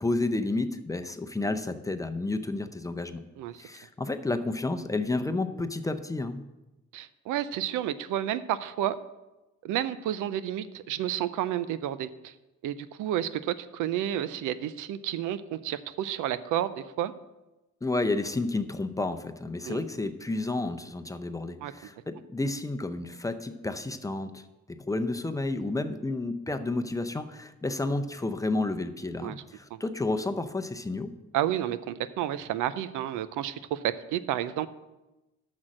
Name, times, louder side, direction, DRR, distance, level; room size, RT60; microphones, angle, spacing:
voice 1, 0.0-3.2 3.6-6.4 17.8-24.4 24.9-31.1, left 2 dB, 10° left, 8 dB, 0.6 m, -31 dB
voice 2, 6.9-9.0 9.6-12.3 12.6-17.1 19.6-19.8 21.6-21.7 29.2-29.4 29.7-29.8 31.3-34.7, right 11 dB, 90° right, 14 dB, 0.5 m, -31 dB
6.3 x 6.3 x 7.4 m, 1.0 s
cardioid pair, 90°, 30 cm